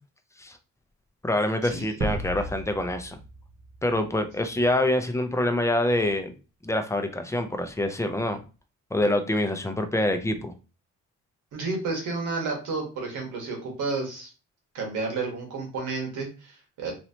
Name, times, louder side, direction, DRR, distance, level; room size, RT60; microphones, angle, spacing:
voice 1, 1.2-3.2 3.8-6.3 6.6-8.4 8.9-10.5, left 1 dB, 10° left, 7 dB, 0.5 m, -26 dB
sound 1, 2.0-4.8, right 2 dB, 40° right, 0.7 m, -35 dB
voice 2, 11.5-14.3 14.7-16.9, right 3 dB, 80° right, 1 dB, 1.4 m, -31 dB
3.1 x 2.9 x 2.7 m, 0.33 s
cardioid pair, 90°, 30 cm